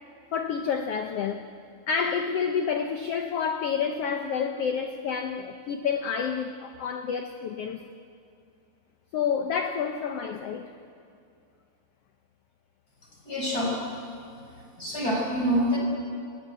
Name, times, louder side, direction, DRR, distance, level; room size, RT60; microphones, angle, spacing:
voice 1, 0.3-1.5 1.9-7.8 9.1-10.7, left 6 dB, 75° left, 1.4 m, -29 dB
voice 2, 13.3-13.7 14.8-15.8, equal, 25° left, 5.6 m, -26 dB
27.5 x 19.5 x 9.2 m
omnidirectional pair, 3.9 m